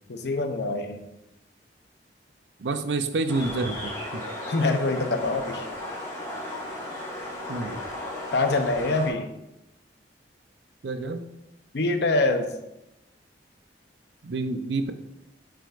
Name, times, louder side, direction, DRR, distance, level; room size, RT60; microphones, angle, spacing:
voice 1, 0.1-1.0 4.5-5.7 8.3-9.3 11.7-12.5, left 2 dB, 65° left, 7 dB, 0.7 m, -25 dB
voice 2, 2.6-4.2 7.5-7.8 10.8-11.3 14.2-14.9, right 3 dB, 75° right, 9 dB, 0.5 m, -28 dB
sound 1, 3.3-9.1, left 1 dB, 20° left, 1.8 m, -35 dB
9.1 x 5.0 x 2.5 m, 0.90 s
head